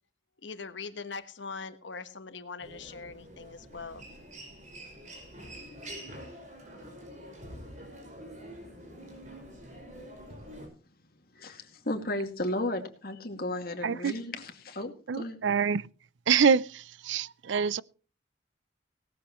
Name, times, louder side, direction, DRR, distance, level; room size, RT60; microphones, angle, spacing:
voice 1, 0.4-4.0, left 4 dB, 75° left, 1.2 m, -41 dB
Human voice, 2.6-10.7, right 1 dB, 40° right, 5.3 m, -46 dB
voice 2, 11.4-15.4, left 1 dB, 50° left, 2.3 m, -34 dB
voice 3, 13.8-14.2 15.1-15.9 16.3-17.8, right 6 dB, 80° right, 0.5 m, -26 dB
18.0 x 13.0 x 3.1 m
head